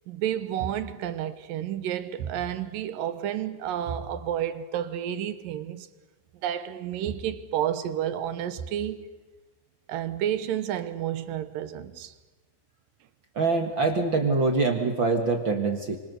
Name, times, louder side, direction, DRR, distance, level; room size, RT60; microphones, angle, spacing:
voice 1, 0.1-5.9 6.4-9.1 9.9-12.1, right 10 dB, 75° right, 2.7 m, -30 dB
voice 2, 13.4-16.0, right 3 dB, 45° right, 1.8 m, -24 dB
30.0 x 25.5 x 6.8 m
omnidirectional pair, 4.1 m